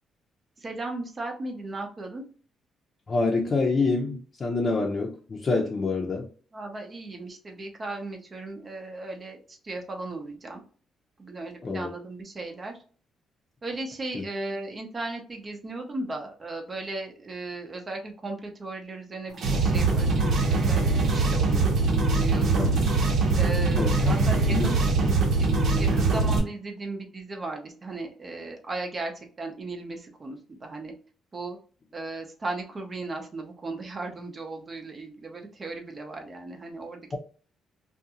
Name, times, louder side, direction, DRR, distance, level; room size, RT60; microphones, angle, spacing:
voice 1, 0.6-2.2 6.5-10.6 11.2-12.8 13.6-20.8 21.1-21.7 22.2-22.7 23.3-24.8 25.4-25.5 25.8-30.9 31.3-31.6 31.9-37.0, right 2 dB, 35° right, 0.7 m, -36 dB
voice 2, 3.1-6.3 11.6-11.9 14.1-14.2 22.6-22.8 23.8-24.7 25.0-25.1, left 3 dB, 40° left, 0.6 m, -27 dB
sound 1, 19.3-26.4, right 3 dB, 70° right, 0.9 m, -23 dB
2.5 x 2.3 x 2.8 m
cardioid pair, 90°, 0 cm